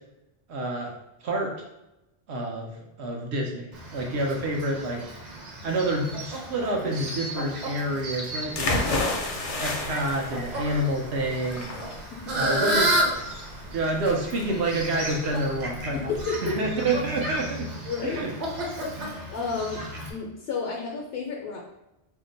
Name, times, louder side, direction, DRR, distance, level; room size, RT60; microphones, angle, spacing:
voice 1, 0.5-0.9 1.2-1.5 2.3-2.7 3.0-5.0 5.6-8.9 9.6-11.8 12.3-12.9 13.7-16.1 16.4-17.7 18.0-18.3 19.0-19.2 19.9-20.0, right 1 dB, 90° right, 0 dB, 1.0 m, -28 dB
Fowl, 3.7-20.1, right 1 dB, 50° right, 0.7 m, -32 dB
sound 1, 8.5-16.2, left 2 dB, 50° left, 0.4 m, -32 dB
voice 2, 12.1-12.7 15.9-16.6 17.9-18.2 18.8-19.8 20.1-21.6, left 4 dB, 75° left, 0 dB, 0.8 m, -32 dB
2.7 x 2.1 x 3.8 m, 0.91 s
omnidirectional pair, 1.1 m